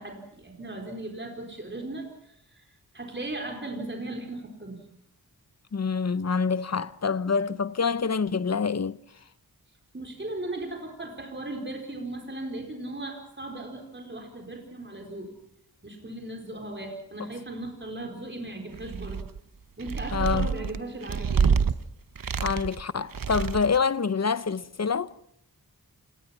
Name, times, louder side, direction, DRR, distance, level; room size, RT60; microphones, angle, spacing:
voice 1, 0.0-2.7 2.9-4.8 9.9-15.3 15.8-19.3 19.8-21.6, right 2 dB, 30° right, 4.4 m, -37 dB
voice 2, 5.7-9.0 20.1-20.5 22.4-25.1, left 5 dB, 45° left, 0.8 m, -26 dB
sound 1, 18.7-19.4 19.8-21.7 22.2-22.8 23.1-23.8, right 6 dB, 60° right, 1.0 m, -27 dB
28.0 x 19.5 x 5.9 m
wide cardioid pair, 70°, 37 cm